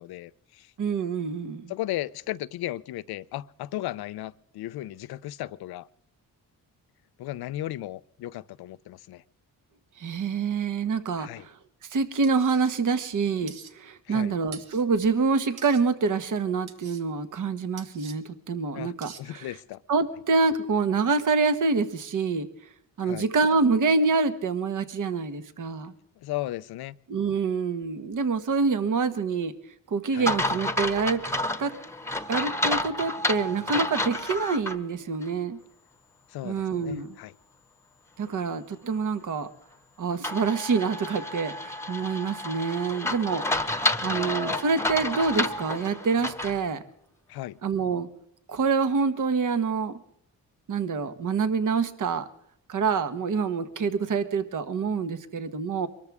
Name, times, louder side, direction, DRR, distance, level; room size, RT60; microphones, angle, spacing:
voice 1, 0.0-0.7 1.7-5.9 7.2-9.2 11.2-11.5 14.1-14.3 18.7-18.9 19.2-19.8 23.0-23.3 26.2-26.9 30.1-30.3 36.3-37.3 44.0-44.2 47.3-47.6, left 15 dB, 80° left, 0.6 m, -35 dB
voice 2, 0.8-1.7 10.0-11.5 11.9-19.5 19.9-22.5 23.0-25.9 27.1-29.5 29.9-31.2 31.6-31.7 32.3-35.6 36.4-37.2 38.2-39.5 40.0-46.8 47.6-48.1 48.5-50.0 50.7-52.3 52.7-55.9, right 4 dB, 55° right, 1.4 m, -26 dB
sound 1, 12.2-12.7 13.5-13.7 14.5-14.8 15.6-15.8 16.7-17.0 17.8-18.2 19.0-19.2, right 7 dB, 75° right, 1.4 m, -45 dB
sound 2, 30.3-34.8 35.2-35.3 40.2-46.6, left 1 dB, 5° left, 1.1 m, -30 dB
23.5 x 13.5 x 3.6 m
cardioid pair, 80°, 37 cm